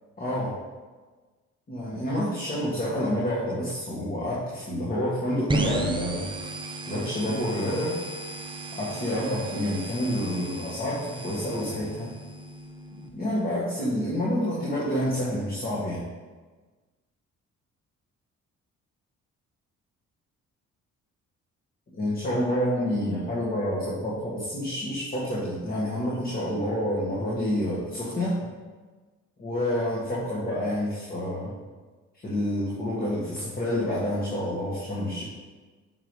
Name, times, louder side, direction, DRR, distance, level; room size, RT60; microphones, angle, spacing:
voice 1, 0.2-0.6 1.7-6.3 6.9-8.0 8.7-12.2 13.1-16.0 22.0-28.4 29.4-31.5 32.2-35.2, equal, 30° left, -7 dB, 1.7 m, -28 dB
sound 1, 5.5-13.1, right 2 dB, 15° right, 0.7 m, -34 dB
6.8 x 6.1 x 3.2 m, 1.4 s
cardioid pair, 90°, 30 cm